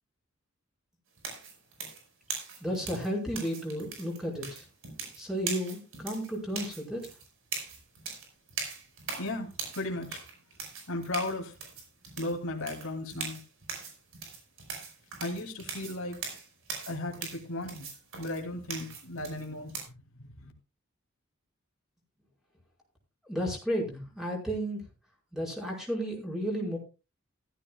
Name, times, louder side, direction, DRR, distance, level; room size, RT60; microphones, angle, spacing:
sound 1, 1.2-19.8, right 5 dB, 70° right, 5.3 m, -40 dB
voice 1, 2.6-4.6 5.2-7.1 23.3-24.8 25.3-26.8, equal, ahead, -1 dB, 5.2 m, -33 dB
voice 2, 9.2-9.5 9.7-10.2 10.9-11.5 12.2-13.4 15.2-16.2 16.9-17.9 18.2-19.7 20.2-20.5, left 2 dB, 75° left, 2 dB, 2.9 m, -35 dB
15.5 x 14.5 x 2.4 m, 0.30 s
head